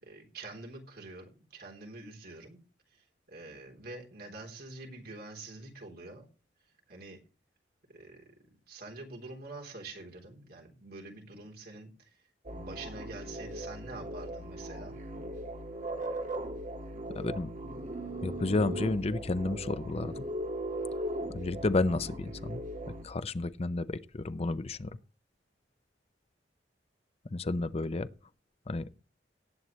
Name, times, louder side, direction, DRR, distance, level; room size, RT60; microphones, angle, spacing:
voice 1, 0.0-2.6 2.9-6.3 6.9-7.2 7.9-8.3 8.7-12.2 12.5-15.0, right 2 dB, 60° right, 3.5 m, -46 dB
sound 1, 12.5-23.0, right 1 dB, 45° right, 2.0 m, -38 dB
voice 2, 17.1-17.5 18.2-20.2 21.3-22.6 23.0-25.0 27.3-28.1 28.7-28.9, left 2 dB, 35° left, 0.6 m, -31 dB
18.5 x 8.2 x 3.2 m
head